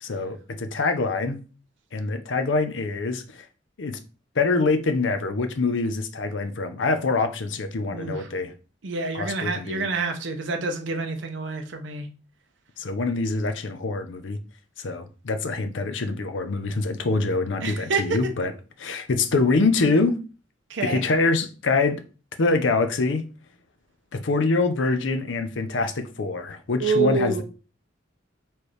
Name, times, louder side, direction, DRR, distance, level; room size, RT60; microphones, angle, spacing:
voice 1, 0.0-1.4 1.9-3.5 3.8-4.0 4.4-8.5 9.1-9.9 12.8-14.4 14.8-18.5 18.8-20.2 20.8-22.0 22.4-23.3 24.1-27.4, left 3 dB, 90° left, 0.6 m, -25 dB
voice 2, 7.9-8.3 8.8-12.1 17.6-18.3 20.7-21.0 26.8-27.4, right 4 dB, 80° right, 0.7 m, -27 dB
4.3 x 3.3 x 3.2 m
head